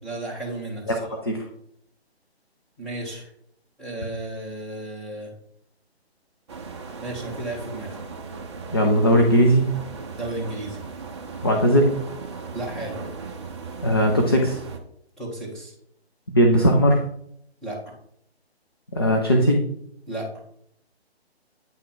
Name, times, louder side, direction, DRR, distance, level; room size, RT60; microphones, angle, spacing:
voice 1, 0.0-1.1 2.8-3.3 3.8-5.3 7.0-8.0 10.1-10.8 12.5-13.0 15.2-15.7 17.6-17.9 20.1-20.3, right 2 dB, ahead, -8 dB, 1.6 m, -33 dB
sound 1, 6.5-14.8, right 4 dB, 25° right, 0.7 m, -37 dB
voice 2, 8.7-9.7 11.4-12.0 13.8-14.6 16.3-17.0 18.9-19.6, equal, 25° left, 2 dB, 0.5 m, -18 dB
9.0 x 3.7 x 4.5 m, 0.70 s
figure-of-eight pair, 155°, 33 cm